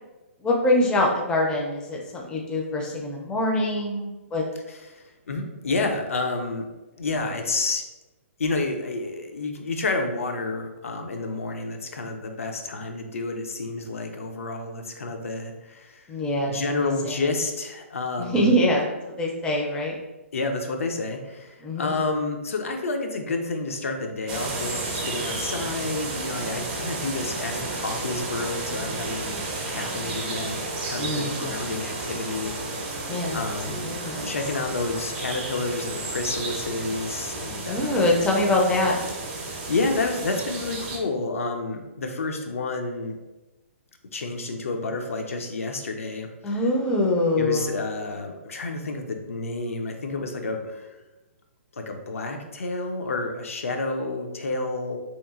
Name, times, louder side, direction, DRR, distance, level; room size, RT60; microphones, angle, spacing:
voice 1, 0.4-4.5 16.1-17.2 18.2-20.0 21.6-22.0 31.0-31.5 33.1-33.4 33.8-34.3 37.6-39.0 46.4-47.8, left 1 dB, 10° left, -1 dB, 0.4 m, -24 dB
voice 2, 4.7-6.7 6.9-7.8 8.4-16.1 16.4-18.5 20.3-32.5 33.3-33.9 34.2-38.0 39.7-43.2 44.1-46.6 47.4-51.0 51.7-55.0, left 3 dB, 80° left, 4 dB, 0.4 m, -30 dB
sound 1, 24.3-41.0, right 2 dB, 40° right, 0.6 m, -32 dB
2.9 x 2.3 x 2.3 m, 1.1 s
hypercardioid pair, 135°, 7 cm